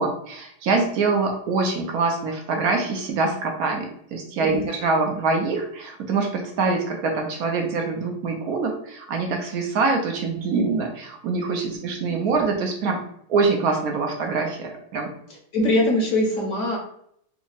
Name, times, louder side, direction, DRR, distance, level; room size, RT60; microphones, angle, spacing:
voice 1, 0.0-13.0 13.3-15.1, right 4 dB, 70° right, 2 dB, 1.0 m, -24 dB
voice 2, 15.5-16.8, left 1 dB, 60° left, -1 dB, 0.9 m, -22 dB
3.4 x 2.0 x 3.9 m, 0.69 s
omnidirectional pair, 1.8 m